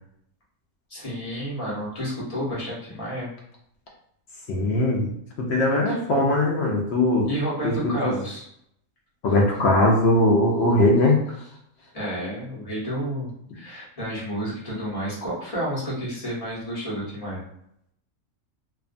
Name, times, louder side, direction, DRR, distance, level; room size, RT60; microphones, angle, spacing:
voice 1, 0.9-3.3 5.8-6.0 7.2-8.5 11.9-17.4, right 1 dB, 30° left, -7 dB, 0.9 m, -31 dB
voice 2, 4.5-7.3 7.6-8.1 9.2-11.4, left 1 dB, 65° left, -2 dB, 0.6 m, -20 dB
2.4 x 2.3 x 2.4 m, 0.73 s
omnidirectional pair, 1.5 m